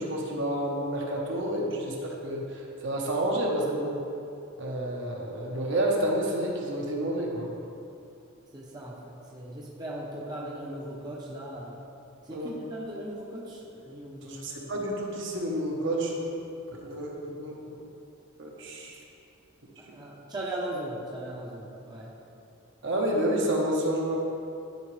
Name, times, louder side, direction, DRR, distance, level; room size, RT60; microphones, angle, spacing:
voice 1, 0.0-2.4 2.8-4.0 4.6-7.5 12.3-12.5 14.2-16.1 16.8-17.8 18.4-18.9 22.8-24.2, right 1 dB, 55° right, -2 dB, 1.2 m, -29 dB
voice 2, 8.5-11.8 12.3-14.4 15.9-16.3 19.9-22.1, right 1 dB, 20° right, -5 dB, 0.8 m, -38 dB
12.0 x 5.0 x 3.3 m, 2.7 s
head